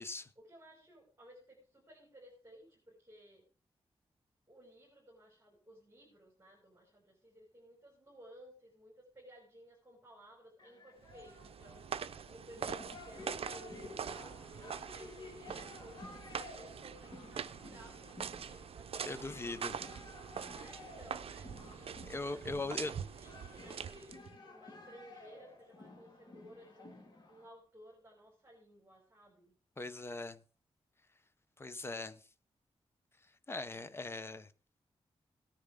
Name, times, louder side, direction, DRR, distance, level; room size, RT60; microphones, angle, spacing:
voice 1, 0.4-3.5 4.5-11.9 12.3-19.1 20.5-29.5, equal, 20° right, 5.5 m, -58 dB
sound 1, 10.6-27.5, left 3 dB, 45° left, 3.3 m, -53 dB
sound 2, 11.1-24.4, right 7 dB, 65° right, 0.6 m, -44 dB
Dog Growl, 14.4-16.5 16.7-20.6 21.6-23.8 24.4-25.7, left 4 dB, 90° left, 1.9 m, -64 dB
voice 2, 19.0-19.8 22.1-22.9 29.8-30.4 31.6-32.2 33.5-34.5, left 2 dB, 25° left, 0.8 m, -40 dB
18.0 x 10.0 x 3.7 m
wide cardioid pair, 165°, 11 cm